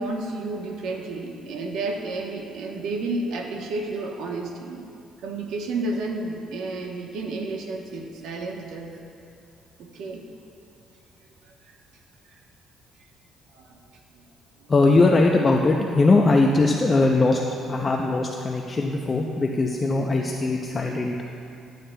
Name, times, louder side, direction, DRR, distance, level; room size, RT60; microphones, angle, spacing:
voice 1, 0.0-4.8 5.2-9.0 9.8-10.2 11.4-11.7 12.3-12.4 13.5-13.8 14.1-14.2 14.6-14.7, right 2 dB, 80° right, 0 dB, 1.0 m, -31 dB
voice 2, 14.7-17.4 17.7-21.1, left 3 dB, 25° left, 1 dB, 0.5 m, -20 dB
13.5 x 9.1 x 2.2 m, 2.5 s
cardioid pair, 120°, 0 cm